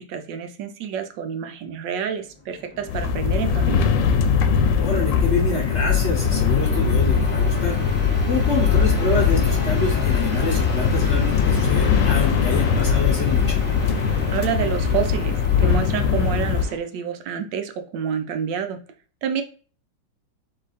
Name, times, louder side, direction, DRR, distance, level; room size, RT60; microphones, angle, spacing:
voice 1, 0.1-3.9 14.0-18.8 19.2-19.4, right 7 dB, 80° right, 7 dB, 1.4 m, -28 dB
sound 1, 2.3-16.8, left 2 dB, 5° left, 1.1 m, -33 dB
sound 2, 2.9-16.6, left 6 dB, 85° left, 1.3 m, -20 dB
voice 2, 4.8-8.0 8.3-13.6, left 3 dB, 50° left, 0 dB, 0.9 m, -27 dB
3.8 x 3.2 x 4.1 m, 0.40 s
omnidirectional pair, 1.9 m